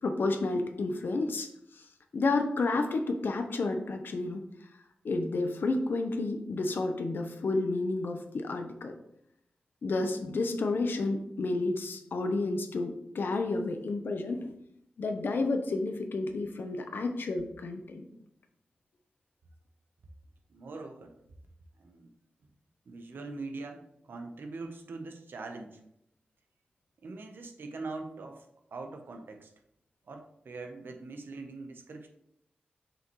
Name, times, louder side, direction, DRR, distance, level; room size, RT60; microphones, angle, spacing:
voice 1, 0.0-1.5 2.1-4.4 5.0-8.9 9.8-14.4 15.0-18.0, left 3 dB, 75° left, 5 dB, 0.9 m, -30 dB
voice 2, 20.5-21.1 21.8-22.1 22.9-25.8 27.0-29.5 30.0-32.1, right 3 dB, 80° right, 4 dB, 0.9 m, -42 dB
6.3 x 5.2 x 3.1 m, 0.77 s
cardioid pair, 70°, 4 cm